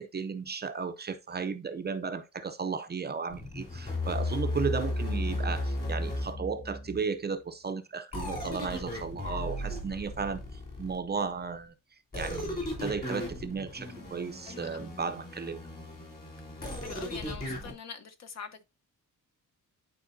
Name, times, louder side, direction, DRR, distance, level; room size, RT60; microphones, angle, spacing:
voice 1, 0.0-11.7 12.1-15.6, right 5 dB, 30° right, 0.5 m, -35 dB
sound 1, 3.3-7.0 8.1-11.2 12.1-17.7, left 1 dB, 30° left, 3.3 m, -35 dB
voice 2, 14.5-14.9 16.8-18.6, left 6 dB, 50° left, 1.0 m, -44 dB
11.0 x 4.4 x 2.7 m
wide cardioid pair, 140°, 33 cm